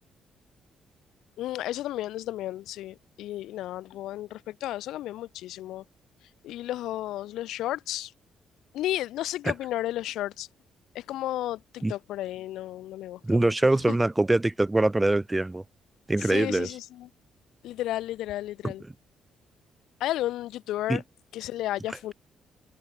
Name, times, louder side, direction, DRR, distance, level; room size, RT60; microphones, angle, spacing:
voice 1, 1.4-5.8 6.4-8.1 8.7-10.5 10.9-13.5 13.9-14.0 16.2-17.1 17.6-18.8 20.0-21.0 21.3-22.1, left 14 dB, 85° left, 2.4 m, -33 dB
voice 2, 13.2-15.6 16.1-16.7 18.6-18.7 20.9-21.0, right 2 dB, 15° right, 1.9 m, -23 dB
cardioid pair, 90°, 0 cm